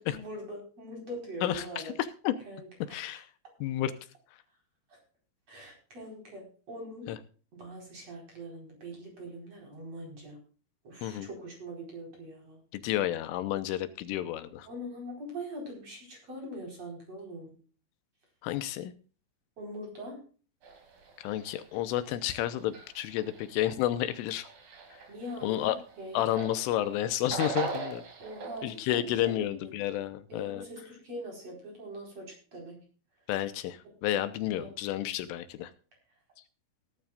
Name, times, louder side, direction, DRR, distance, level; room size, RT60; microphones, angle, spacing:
voice 1, 0.0-1.9 2.4-3.2 4.9-5.0 5.5-7.2 7.5-10.4 10.8-12.6 14.6-17.5 19.6-20.2 25.1-26.3 28.2-29.7 30.3-32.8 34.5-34.7, equal, 30° right, 1 dB, 5.1 m, -42 dB
voice 2, 2.0-2.3 2.9-3.3 3.6-3.9 7.1-7.2 11.0-11.3 12.7-14.7 18.4-18.9 21.2-24.5 24.9-25.0 25.4-25.8 26.1-28.0 28.6-30.6 33.3-35.7, left 13 dB, 85° left, 12 dB, 3.3 m, -31 dB
sound 1, 20.6-26.7 27.0-28.7, right 5 dB, 50° right, 4.3 m, -40 dB
18.5 x 11.5 x 2.4 m, 0.38 s
omnidirectional pair, 5.8 m